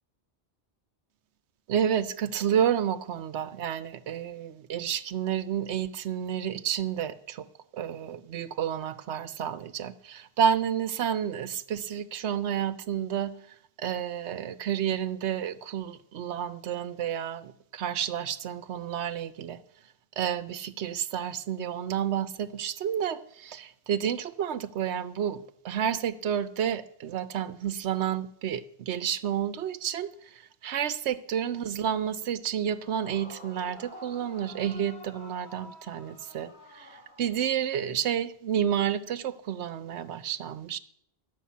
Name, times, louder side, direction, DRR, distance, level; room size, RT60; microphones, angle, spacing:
voice 1, 1.7-7.5 7.7-13.3 13.8-19.6 20.2-40.8, right 9 dB, 80° right, 1.0 m, -30 dB
Yell / Screaming, 32.8-37.7, left 1 dB, 70° left, 2.6 m, -49 dB
11.5 x 6.3 x 8.3 m
omnidirectional pair, 1.1 m